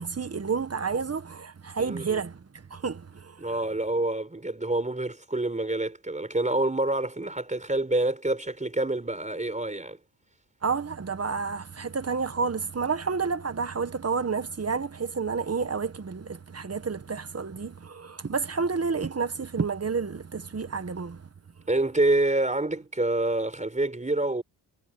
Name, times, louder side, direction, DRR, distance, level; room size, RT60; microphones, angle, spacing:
voice 1, 0.0-3.5 10.6-21.3, right 5 dB, 35° right, 1.6 m, -30 dB
voice 2, 1.8-2.2 3.4-10.0 21.7-24.4, right 2 dB, 20° right, 4.4 m, -27 dB
wide cardioid pair, 95°, 41 cm